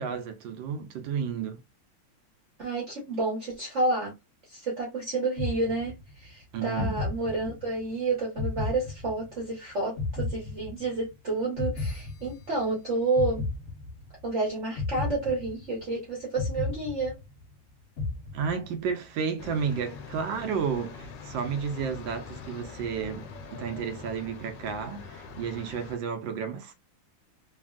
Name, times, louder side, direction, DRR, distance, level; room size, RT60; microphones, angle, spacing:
voice 1, 0.0-1.6 6.5-7.0 18.3-26.7, right 6 dB, 80° right, 1.3 m, -32 dB
voice 2, 2.6-4.1 4.5-13.4 14.2-17.2, right 2 dB, 50° right, 1.0 m, -30 dB
sound 1, 5.4-6.2 6.8-7.8 8.4-9.5 10.0-11.1 11.6-12.7 13.2-14.2 14.8-15.9 16.4-17.5 18.0-18.8, left 3 dB, 55° left, 1.2 m, -33 dB
sound 2, 19.4-26.0, left 4 dB, 75° left, 1.3 m, -43 dB
3.4 x 2.3 x 2.3 m
omnidirectional pair, 2.0 m